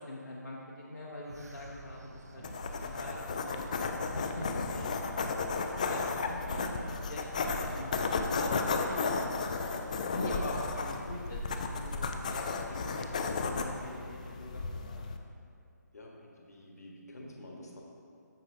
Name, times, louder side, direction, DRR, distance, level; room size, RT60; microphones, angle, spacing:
voice 1, 0.1-2.4 2.8-4.5 5.4-8.0 8.3-9.2 10.1-15.1, left 1 dB, 75° left, -5 dB, 1.0 m, -43 dB
sound 1, 1.3-4.7, right 1 dB, 60° right, 0.9 m, -50 dB
sound 2, 2.4-15.2, left 4 dB, 25° left, 0.3 m, -34 dB
voice 2, 4.7-5.5 15.9-17.8, equal, 60° left, -1 dB, 1.4 m, -49 dB
13.5 x 5.0 x 2.6 m, 2.5 s
figure-of-eight pair, 145°, 10 cm